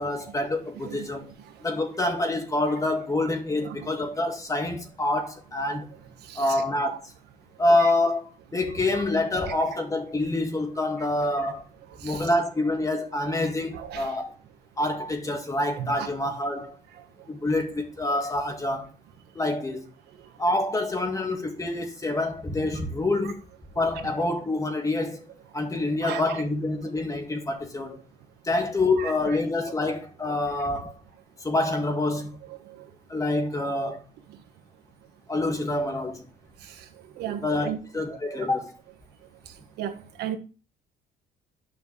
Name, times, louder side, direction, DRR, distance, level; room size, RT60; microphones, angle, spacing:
voice 1, 0.0-1.3 1.6-5.9 6.4-7.1 7.6-11.6 12.0-14.3 14.8-16.8 17.3-18.9 19.3-19.9 20.4-23.4 23.8-25.3 25.5-28.0 28.4-31.0 31.4-32.4 33.1-34.0 35.3-36.3 37.4-38.8, left 2 dB, 20° left, 2.1 m, -27 dB
voice 2, 6.3-6.6 7.8-7.9 12.1-12.3 13.7-14.1 15.8-16.1 26.0-26.4 29.0-29.1 37.2-37.8 38.3-38.5 39.8-39.9 40.2-40.4, right 10 dB, 75° right, 1.6 m, -34 dB
10.5 x 5.8 x 3.3 m
cardioid pair, 110°, 17 cm